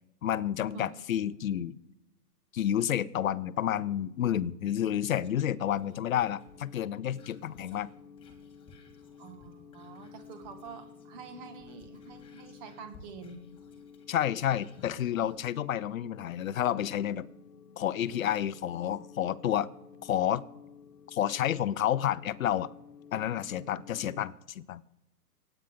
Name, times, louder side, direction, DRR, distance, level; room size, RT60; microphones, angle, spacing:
voice 1, 0.2-1.8 2.5-7.9 14.1-17.3 17.8-19.7 20.0-20.4 21.1-22.7 23.1-24.8, left 10 dB, 60° left, 18 dB, 0.7 m, -30 dB
sound 1, 5.0-24.3, left 6 dB, 85° left, 1.4 m, -53 dB
Whispering, 5.2-11.2 11.5-15.4 15.9-16.0, left 3 dB, 10° left, 1.8 m, -60 dB
voice 2, 9.2-13.4 23.7-23.8, right 5 dB, 25° right, 8 dB, 1.8 m, -47 dB
26.5 x 9.3 x 3.8 m, 0.97 s
hypercardioid pair, 145°, 47 cm